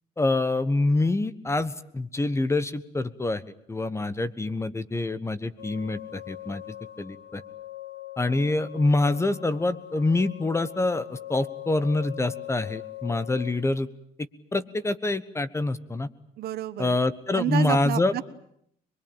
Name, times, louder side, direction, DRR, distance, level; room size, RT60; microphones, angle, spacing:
voice 1, 0.2-3.4 3.7-6.6 7.0-7.4 8.2-13.9 14.5-16.1 16.8-18.1, left 2 dB, 15° left, 16 dB, 1.2 m, -26 dB
sound 1, 5.6-13.5, left 15 dB, 90° left, 4.0 m, -41 dB
voice 2, 16.4-17.0 17.3-18.2, right 12 dB, 70° right, 14 dB, 1.3 m, -29 dB
23.0 x 23.0 x 9.0 m, 0.72 s
cardioid pair, 110°, 17 cm